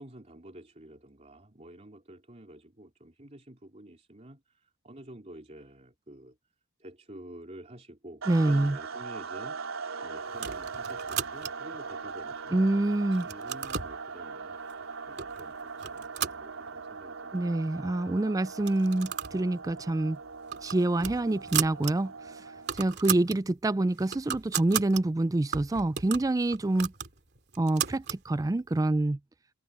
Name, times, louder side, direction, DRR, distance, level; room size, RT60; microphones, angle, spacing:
voice 1, 0.0-6.4 6.8-9.6 10.0-12.7 13.0-17.6, right 1 dB, 35° right, 3.3 m, -49 dB
sound 1, 8.2-23.0, right 5 dB, 75° right, 3.8 m, -40 dB
voice 2, 8.3-8.8 12.5-13.3 17.3-20.2 20.6-22.1 22.7-26.9 27.6-29.2, right 2 dB, 15° right, 0.3 m, -26 dB
sound 2, 10.3-11.8 12.3-12.8 13.1-14.0 14.7-14.8 15.2-15.4 15.8-17.0 17.4-17.5 17.7-17.8 18.5-19.4 19.7-19.9 20.3-21.9 22.3-22.4 22.6-23.4 23.8-25.0 25.5-28.2, right 9 dB, 50° right, 2.7 m, -35 dB
head